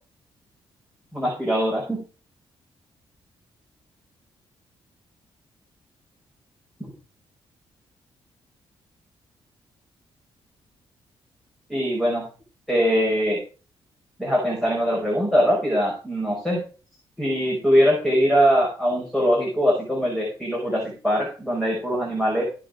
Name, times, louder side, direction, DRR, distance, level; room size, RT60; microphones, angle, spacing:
voice 1, 1.1-2.0 11.7-12.2 12.7-13.4 14.2-16.6 17.2-22.4, equal, 5° left, -3 dB, 5.1 m, -22 dB
15.5 x 6.7 x 5.0 m, 0.35 s
wide cardioid pair, 175°, 10 cm